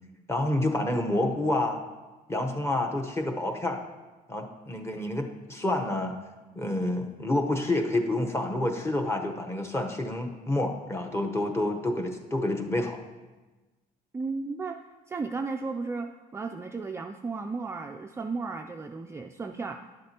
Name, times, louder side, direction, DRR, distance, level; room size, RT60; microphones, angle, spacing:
voice 1, 0.3-1.8 2.3-3.8 4.3-6.2 6.5-13.0, left 1 dB, 15° left, 3 dB, 0.9 m, -28 dB
voice 2, 14.1-14.8 15.1-19.9, right 4 dB, 15° right, 4 dB, 0.3 m, -34 dB
11.0 x 7.5 x 2.9 m, 1.2 s
cardioid pair, 110°, 17 cm